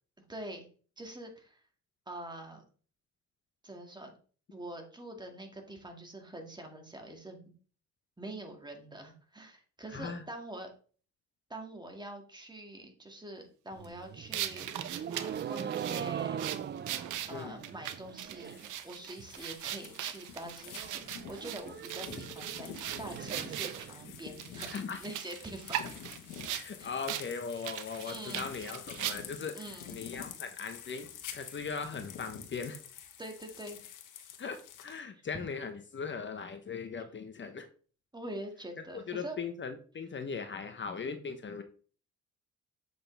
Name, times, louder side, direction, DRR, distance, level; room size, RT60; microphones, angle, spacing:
voice 1, 0.2-0.7 1.0-1.6 2.1-2.6 3.6-4.2 4.5-7.4 8.2-10.7 11.5-16.4 17.3-25.8 26.8-26.9 28.0-28.4 29.5-30.0 33.2-33.8 38.1-39.4, right 1 dB, 15° right, 3 dB, 2.2 m, -45 dB
voice 2, 9.9-10.2 17.3-17.6 24.6-25.0 26.5-29.6 29.9-32.8 34.4-37.7 38.9-41.6, left 5 dB, 40° left, 7 dB, 1.0 m, -39 dB
sound 1, 13.7-18.8 19.0-19.6 19.9-20.0 20.2-20.3 20.6-24.6, right 8 dB, 35° right, 0.5 m, -41 dB
sound 2, 14.3-23.9 24.4-26.7 27.1-27.3 27.6-29.5, right 11 dB, 85° right, 0.9 m, -39 dB
sound 3, 18.4-35.0, left 9 dB, 85° left, 1.4 m, -48 dB
7.9 x 6.6 x 3.4 m, 0.40 s
cardioid pair, 90°, 30 cm